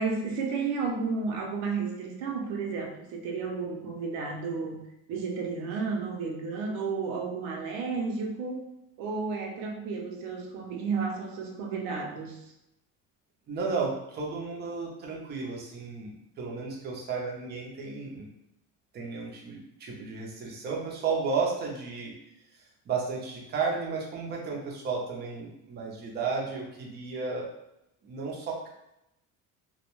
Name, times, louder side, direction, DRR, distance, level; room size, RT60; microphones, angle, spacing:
voice 1, 0.0-8.6 9.0-12.4, right 4 dB, 85° right, 1 dB, 0.6 m, -32 dB
voice 2, 13.5-18.3 18.9-22.1 22.5-27.5 28.0-28.7, right 4 dB, 30° right, -2 dB, 0.5 m, -33 dB
2.2 x 2.1 x 3.0 m, 0.84 s
cardioid pair, 150°, 34 cm